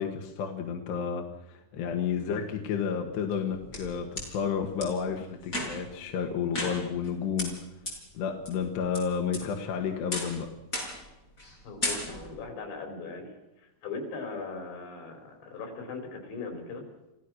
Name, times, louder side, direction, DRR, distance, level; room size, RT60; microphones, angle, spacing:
voice 1, 0.0-7.5 8.2-10.5, left 7 dB, 75° left, 3 dB, 3.6 m, -31 dB
sound 1, 3.3-4.3 4.8-4.9 5.4-6.0 6.5-7.1 7.4-7.5 7.9-8.0 8.4-9.0 9.3-9.7 10.1-10.4 10.7-11.1 11.4-11.5 11.8-12.4, left 1 dB, 20° left, 6.1 m, -34 dB
voice 2, 11.6-16.8, left 4 dB, 90° left, 4 dB, 7.0 m, -39 dB
29.5 x 16.5 x 6.4 m, 0.93 s
omnidirectional pair, 5.0 m